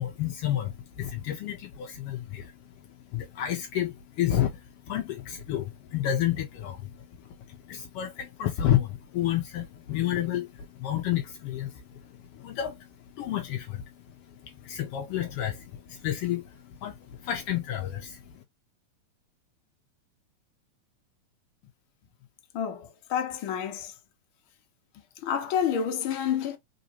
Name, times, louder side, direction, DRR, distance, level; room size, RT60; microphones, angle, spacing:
voice 1, 0.0-18.4, left 11 dB, 85° left, 1.3 m, -31 dB
voice 2, 22.5-23.9 25.2-26.6, left 8 dB, 65° left, 1.3 m, -29 dB
4.0 x 3.6 x 2.8 m
omnidirectional pair, 3.4 m